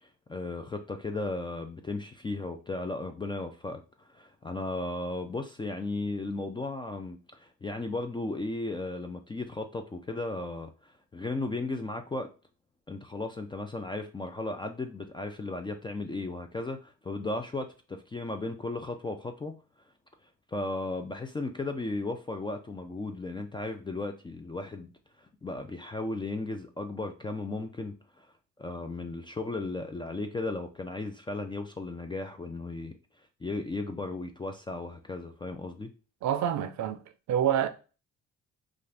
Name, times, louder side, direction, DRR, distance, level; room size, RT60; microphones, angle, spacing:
voice 1, 0.0-3.8 4.1-12.3 12.9-19.5 20.5-24.9 25.2-28.3 28.6-33.0 33.4-35.9, left 2 dB, 15° left, 0.3 m, -35 dB
voice 2, 36.2-37.0 37.3-37.7, right 10 dB, 70° right, 0.5 m, -27 dB
2.5 x 2.4 x 3.3 m
cardioid pair, 90°, 30 cm